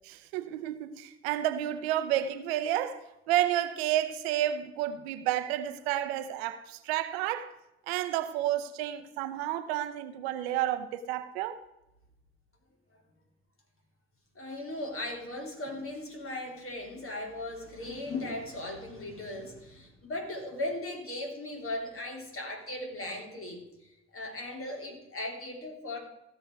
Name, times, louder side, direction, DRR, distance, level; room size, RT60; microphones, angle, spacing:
voice 1, 0.0-7.5 7.9-11.6, right 12 dB, 85° right, 0.7 m, -31 dB
voice 2, 14.3-26.0, left 1 dB, 45° left, 3.4 m, -38 dB
15.5 x 6.4 x 4.6 m
hypercardioid pair, 45°, 31 cm